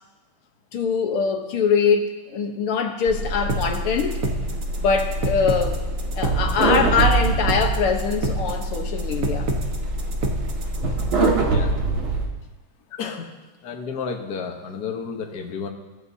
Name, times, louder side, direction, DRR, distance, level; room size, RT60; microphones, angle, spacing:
voice 1, 0.7-4.2 4.8-5.8 6.2-9.5, left 5 dB, 80° left, 3 dB, 2.0 m, -23 dB
sound 1, 3.1-12.2, right 2 dB, 65° right, 2.7 m, -24 dB
sound 2, 3.5-11.5, right 2 dB, 45° right, 1.5 m, -28 dB
voice 2, 11.4-11.7 13.0-13.4 13.6-15.7, left 6 dB, 50° left, 2 dB, 1.6 m, -31 dB
22.5 x 13.0 x 2.8 m, 1.1 s
omnidirectional pair, 2.4 m